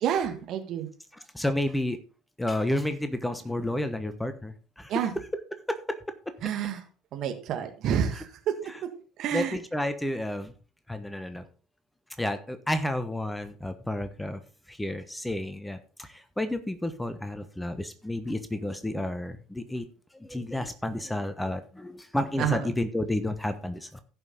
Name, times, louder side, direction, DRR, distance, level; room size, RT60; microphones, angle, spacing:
voice 1, 0.0-0.9 4.9-5.1 6.4-6.8 7.1-8.3 9.2-9.6 22.4-22.7, right 9 dB, 50° right, 6 dB, 1.7 m, -28 dB
voice 2, 1.1-2.0 2.4-4.9 5.7-5.8 9.3-10.5 10.9-11.4 12.2-14.4 14.7-19.9 20.1-24.0, left 1 dB, 5° left, 10 dB, 1.1 m, -31 dB
15.5 x 5.6 x 4.0 m, 0.36 s
figure-of-eight pair, 60°, 0 cm